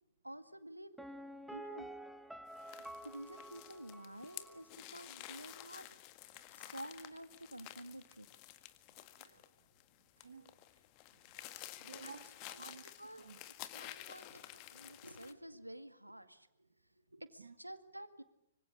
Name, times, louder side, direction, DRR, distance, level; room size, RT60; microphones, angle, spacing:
voice 1, 0.2-1.0 1.5-1.9 3.0-5.9 6.5-8.3 12.0-12.2 12.5-13.3 13.7-16.7 17.1-18.2, right 1 dB, 85° right, 2.0 m, -50 dB
Piano, 1.0-4.7 5.0-5.1, right 1 dB, 5° right, 1.3 m, -50 dB
sound 1, 2.5-15.3, left 15 dB, 30° left, 1.8 m, -52 dB
voice 2, 10.2-10.6 11.4-12.9 13.2-13.4 17.4-17.6, right 5 dB, 65° right, 1.4 m, -55 dB
25.5 x 25.5 x 8.7 m
figure-of-eight pair, 115°, 0 cm